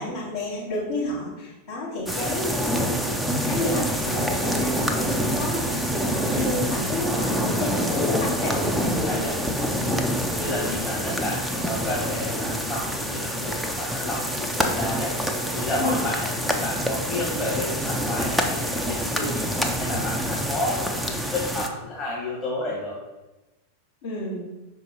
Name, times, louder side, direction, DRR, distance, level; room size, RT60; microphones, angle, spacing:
voice 1, 0.0-2.9 3.4-9.3 15.8-16.0 24.0-24.4, left 1 dB, 55° left, -9 dB, 2.0 m, -30 dB
sound 1, 2.1-21.7, equal, ahead, 0.6 m, -26 dB
voice 2, 9.1-9.4 9.7-9.9 10.4-15.1 15.5-22.9, left 1 dB, 20° left, -6 dB, 1.5 m, -31 dB
5.4 x 4.4 x 4.6 m, 1.1 s
figure-of-eight pair, 90°, 0 cm